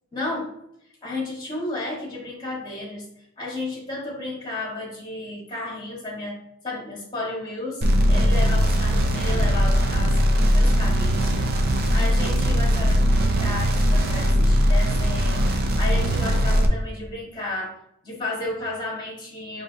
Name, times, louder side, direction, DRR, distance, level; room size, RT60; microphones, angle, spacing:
voice 1, 0.1-0.5 1.0-3.1 3.4-6.4 6.6-17.8 18.0-19.6, left 2 dB, 20° left, -2 dB, 1.6 m, -33 dB
sound 1, 7.8-16.7, equal, 50° right, 0.5 m, -20 dB
5.9 x 2.6 x 2.8 m, 0.75 s
head